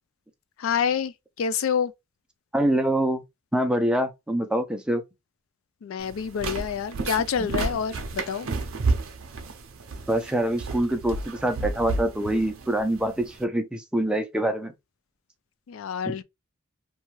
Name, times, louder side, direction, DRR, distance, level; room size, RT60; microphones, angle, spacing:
voice 1, 0.6-1.9 5.8-8.5 15.7-16.2, left 7 dB, 75° left, 0.3 m, -27 dB
voice 2, 2.5-3.2 3.5-5.0 7.4-7.5 10.1-14.7 16.1-16.2, right 1 dB, 5° right, 0.5 m, -25 dB
sound 1, 6.0-13.4, right 3 dB, 75° right, 0.5 m, -31 dB
2.7 x 2.3 x 3.0 m
head